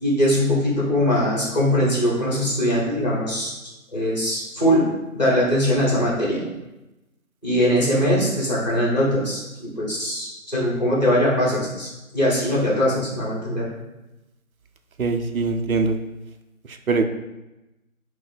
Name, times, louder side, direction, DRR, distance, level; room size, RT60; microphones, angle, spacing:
voice 1, 0.0-3.5 3.9-4.9 5.1-6.4 7.4-11.9 12.1-13.7, equal, 30° left, -5 dB, 1.2 m, -21 dB
voice 2, 15.0-15.9 16.9-17.0, right 4 dB, 75° right, 7 dB, 0.5 m, -22 dB
4.6 x 2.1 x 4.2 m, 0.99 s
figure-of-eight pair, 165°, 42 cm